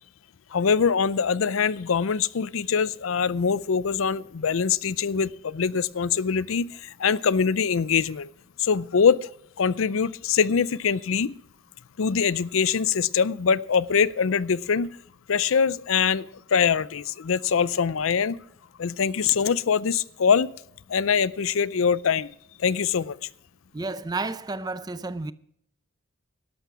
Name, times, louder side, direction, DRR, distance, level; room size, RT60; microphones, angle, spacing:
voice 1, 0.5-8.3 8.6-9.3 9.6-11.3 12.0-15.0 15.3-18.4 18.8-20.5 20.9-22.3 22.6-23.2, left 6 dB, 80° left, 0.5 m, -23 dB
voice 2, 23.7-25.3, right 3 dB, 20° right, 0.5 m, -31 dB
12.5 x 12.0 x 4.8 m
head